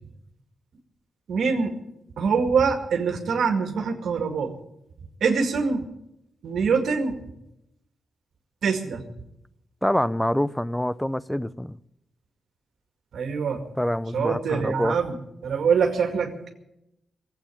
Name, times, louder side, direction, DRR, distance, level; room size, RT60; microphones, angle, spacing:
voice 1, 1.3-1.7 2.2-4.5 5.2-5.9 6.4-7.2 8.6-9.0 13.1-13.6 14.1-15.2 15.4-16.5, right 5 dB, 75° right, 2.1 m, -24 dB
voice 2, 9.8-11.8 13.8-15.0, equal, 5° left, 0.5 m, -26 dB
20.0 x 8.4 x 8.4 m
cardioid pair, 95°, 0 cm